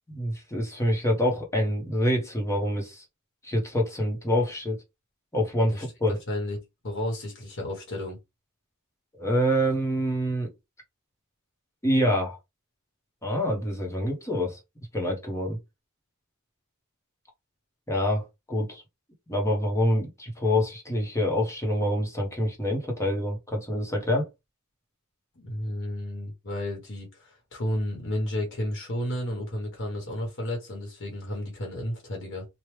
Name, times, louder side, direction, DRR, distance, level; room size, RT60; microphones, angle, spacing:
voice 1, 0.1-3.0 3.4-4.8 5.3-6.2 9.2-10.5 11.8-12.4 13.2-14.6 14.9-15.6 17.9-18.8 19.3-24.3, equal, 15° left, 1.1 m, -26 dB
voice 2, 6.3-6.6 6.8-8.2 25.3-32.5, left 1 dB, 60° left, 1.3 m, -32 dB
3.2 x 2.4 x 3.2 m
head